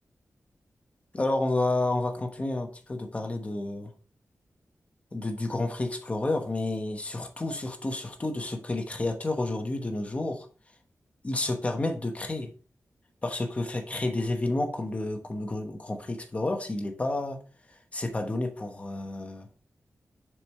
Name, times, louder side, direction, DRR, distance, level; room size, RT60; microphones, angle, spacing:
voice 1, 1.1-3.9 5.1-10.5 11.2-12.5 13.2-17.4 17.9-19.5, left 2 dB, 25° left, 1.0 m, -30 dB
6.8 x 4.6 x 3.2 m
wide cardioid pair, 170°, 5 cm